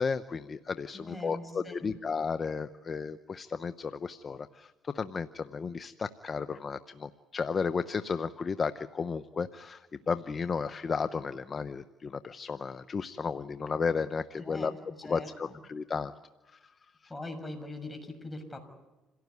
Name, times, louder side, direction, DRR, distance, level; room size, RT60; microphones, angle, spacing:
voice 1, 0.0-14.7 15.0-16.1 16.5-16.6, left 5 dB, 40° left, 12 dB, 0.9 m, -33 dB
voice 2, 0.9-1.9 14.4-14.8 15.0-15.6 17.1-18.6, left 2 dB, 15° left, 6 dB, 6.7 m, -41 dB
28.0 x 17.5 x 9.6 m, 1.1 s
supercardioid pair, 75°, 0 cm